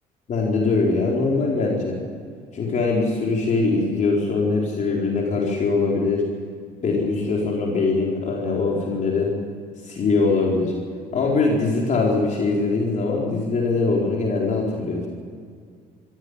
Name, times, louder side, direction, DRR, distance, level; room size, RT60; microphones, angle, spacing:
voice 1, 0.3-2.0 2.5-6.2 6.8-9.3 9.8-10.7 11.1-15.0, left 3 dB, 45° left, -2 dB, 4.7 m, -22 dB
24.0 x 15.0 x 9.9 m, 2.1 s
cardioid pair, 110°, 17 cm